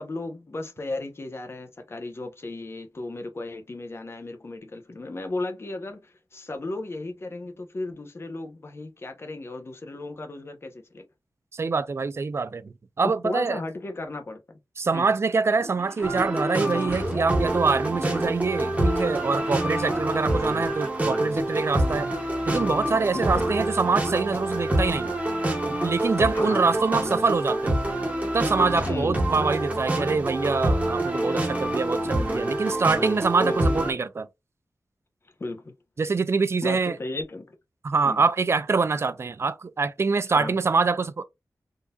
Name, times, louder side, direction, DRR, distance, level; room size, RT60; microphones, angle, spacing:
voice 1, 0.0-11.0 13.2-14.6 14.9-15.1 19.9-20.2 23.1-23.5 26.3-26.7 28.9-29.2 32.0-32.1 33.4-33.6 35.4-35.7 36.6-37.6 38.0-38.2 40.3-40.6, left 2 dB, 40° left, 0.8 m, -35 dB
voice 2, 11.5-13.6 14.8-22.1 22.5-25.1 25.7-27.8 28.3-34.3 36.0-37.0 37.8-41.2, right 4 dB, 40° right, 0.3 m, -25 dB
sound 1, 15.6-23.2 23.5-24.2 24.5-25.6 25.8-25.9 26.9-27.0 27.1-27.2 27.5-27.6 27.9-28.2 28.5-28.6 28.8-28.9, equal, 5° left, 1.1 m, -44 dB
sound 2, 16.0-33.9, right 1 dB, 20° right, 1.1 m, -26 dB
3.7 x 2.6 x 2.3 m
wide cardioid pair, 95°, 7 cm